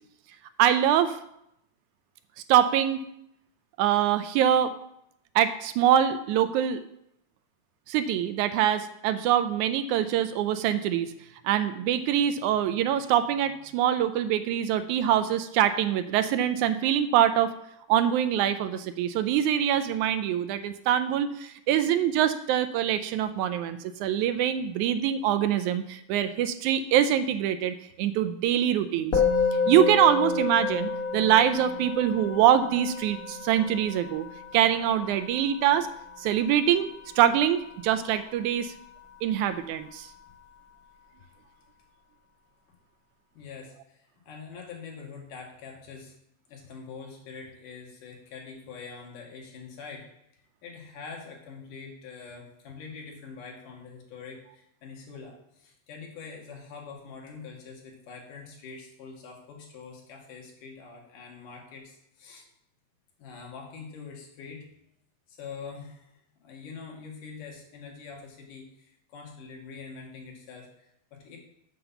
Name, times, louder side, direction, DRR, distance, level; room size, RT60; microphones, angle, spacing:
voice 1, 0.6-1.2 2.5-3.0 3.8-4.7 5.4-6.8 7.9-11.1 11.4-17.5 17.9-29.1 29.7-34.3 34.5-35.9 36.2-36.9 37.2-38.7 39.2-40.1, right 10 dB, 80° right, 11 dB, 1.9 m, -24 dB
Musical instrument, 29.1-38.6, left 5 dB, 50° left, 1.0 m, -30 dB
voice 2, 43.3-46.1 46.5-50.1 50.6-62.5 63.2-64.6 65.3-66.1 66.4-71.4, left 5 dB, 85° left, 0 dB, 3.4 m, -44 dB
7.8 x 5.6 x 6.9 m, 0.77 s
omnidirectional pair, 3.6 m